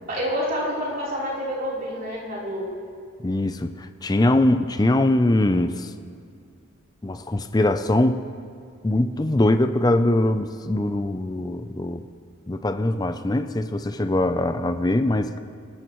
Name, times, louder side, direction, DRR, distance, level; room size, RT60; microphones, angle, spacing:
voice 1, 0.1-2.7, equal, 45° right, -6 dB, 3.8 m, -28 dB
voice 2, 3.2-5.9 7.0-8.2 8.8-12.1 12.5-15.4, left 1 dB, 20° left, 9 dB, 0.5 m, -22 dB
23.5 x 13.0 x 3.1 m, 2.2 s
head